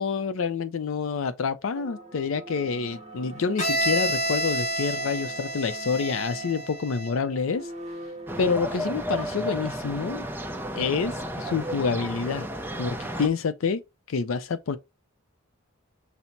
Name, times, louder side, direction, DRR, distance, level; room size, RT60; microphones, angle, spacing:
voice 1, 0.0-7.7 8.4-10.3 10.8-12.5 12.8-13.8 14.1-14.8, left 5 dB, 70° left, 0.4 m, -27 dB
sound 1, 1.7-8.9, right 2 dB, 35° right, 0.9 m, -42 dB
Bowed string instrument, 3.6-7.3, right 1 dB, 35° left, 0.7 m, -29 dB
sound 2, 8.3-13.3, right 1 dB, 10° right, 0.5 m, -33 dB
5.7 x 2.0 x 3.9 m
head